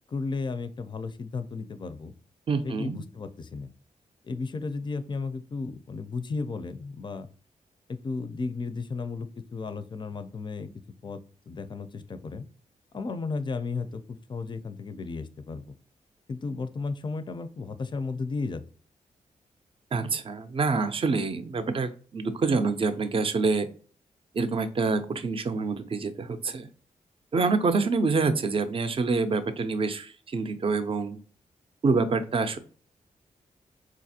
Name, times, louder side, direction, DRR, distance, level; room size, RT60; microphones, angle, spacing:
voice 1, 0.1-2.1 2.6-3.7 4.2-7.3 7.9-10.7 11.0-11.2 11.5-12.5 12.9-15.7 16.3-18.6, left 4 dB, 35° left, 11 dB, 0.4 m, -34 dB
voice 2, 2.5-3.0 19.9-23.7 24.3-26.7 27.3-31.2 31.8-32.6, right 4 dB, 40° right, 9 dB, 0.5 m, -26 dB
4.0 x 2.4 x 2.7 m, 0.41 s
cardioid pair, 90°, 14 cm